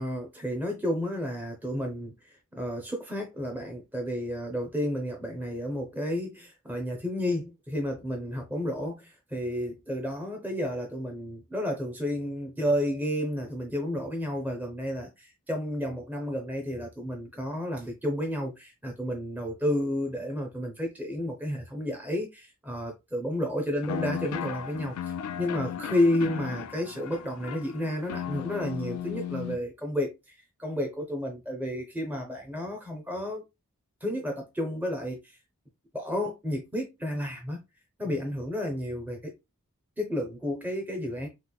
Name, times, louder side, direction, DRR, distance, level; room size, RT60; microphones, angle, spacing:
voice 1, 0.0-2.1 2.5-15.1 15.5-25.0 25.4-33.4 34.0-35.3 35.9-37.6 38.0-39.3 40.0-41.3, left 1 dB, 10° right, 0.5 m, -31 dB
sound 1, 23.8-29.6, left 9 dB, 80° left, 0.3 m, -36 dB
3.2 x 3.0 x 2.2 m
head